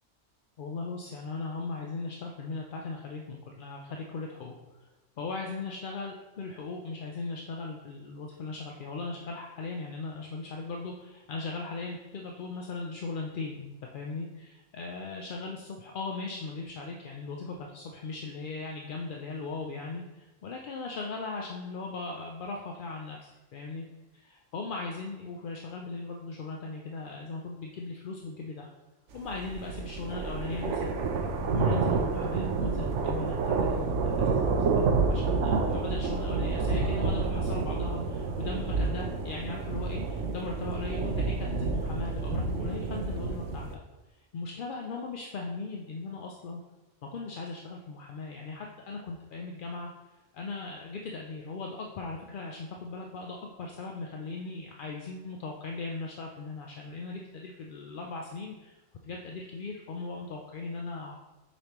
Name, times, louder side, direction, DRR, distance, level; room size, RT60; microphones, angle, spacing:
voice 1, 0.6-4.5 5.2-23.9 24.1-28.7 29.1-31.1 31.5-34.6 35.1-43.8 44.3-46.6 47.0-49.9 50.3-61.3, left 3 dB, 55° left, 0 dB, 0.6 m, -38 dB
sound 1, 29.3-43.7, right 4 dB, 75° right, 1.0 m, -29 dB
7.0 x 5.1 x 3.0 m, 1.1 s
omnidirectional pair, 1.3 m